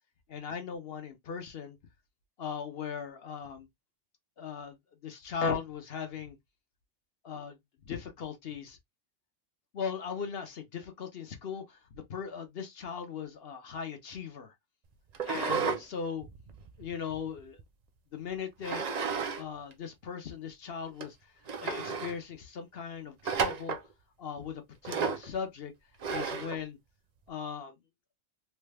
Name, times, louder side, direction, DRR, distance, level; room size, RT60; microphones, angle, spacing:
voice 1, 0.3-1.8 2.4-3.7 4.4-4.8 5.0-6.4 7.2-7.6 7.8-8.8 9.7-14.5 15.2-16.3 16.8-17.6 18.1-18.8 19.4-23.8 24.2-25.7 26.1-26.8 27.3-27.7, left 6 dB, 55° left, 1.0 m, -38 dB
sound 1, 15.1-15.8 16.2-17.6 18.6-19.4 19.7-19.8 20.5-20.6 21.0-21.1 21.5-22.2 23.2-23.9 24.8-25.3 26.0-26.6, right 5 dB, 50° right, 0.5 m, -32 dB
3.2 x 2.2 x 3.3 m
omnidirectional pair, 1.2 m